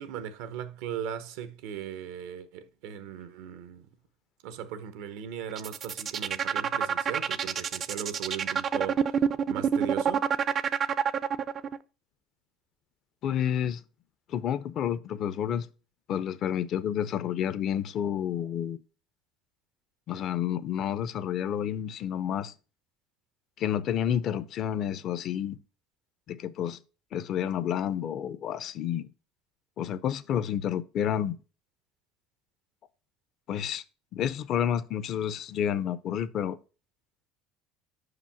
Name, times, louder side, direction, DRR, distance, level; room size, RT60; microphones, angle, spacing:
voice 1, 0.0-3.9 4.4-10.3, right 9 dB, 85° right, 0.7 m, -38 dB
sound 1, 5.5-11.8, right 7 dB, 40° right, 0.4 m, -27 dB
voice 2, 13.2-13.8 14.3-15.7 16.1-18.8 20.1-22.5 23.6-25.6 26.3-26.8 27.1-29.1 29.8-31.4 33.5-33.8 34.1-36.6, left 9 dB, 50° left, 0.5 m, -30 dB
5.6 x 4.9 x 5.7 m
supercardioid pair, 110°, 0 cm